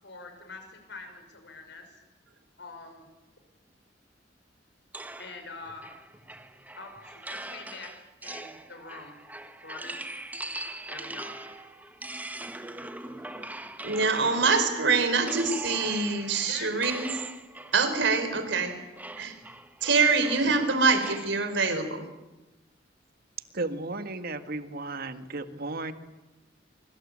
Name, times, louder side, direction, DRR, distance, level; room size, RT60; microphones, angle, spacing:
voice 1, 0.0-2.0 2.6-3.1 5.2-5.9 6.7-9.1 9.6-10.1 10.9-11.4 16.4-17.1, left 3 dB, 65° left, 6 dB, 6.5 m, -44 dB
sound 1, 4.9-14.7 15.2-21.4, right 1 dB, 10° right, 1.5 m, -41 dB
voice 2, 13.8-17.1 17.6-18.8 19.2-19.4 19.8-22.1, right 4 dB, 70° right, 9 dB, 4.4 m, -25 dB
voice 3, 23.5-25.9, right 2 dB, 55° right, 9 dB, 1.8 m, -34 dB
25.0 x 23.5 x 8.7 m, 1.1 s
head